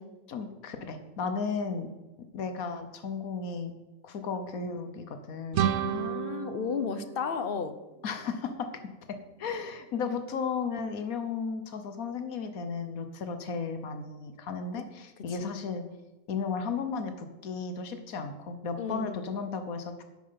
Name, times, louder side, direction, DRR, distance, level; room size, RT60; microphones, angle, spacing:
voice 1, 0.3-1.9 2.3-3.7 4.0-5.6 8.0-15.8 16.3-20.0, left 5 dB, 85° left, 8 dB, 1.5 m, -34 dB
sound 1, 5.5-8.3, right 9 dB, 70° right, 0.9 m, -32 dB
voice 2, 5.8-7.8 14.7-14.8 15.3-15.5 18.8-19.2, left 6 dB, 45° left, 11 dB, 0.9 m, -34 dB
10.5 x 9.1 x 5.8 m, 1.1 s
omnidirectional pair, 1.5 m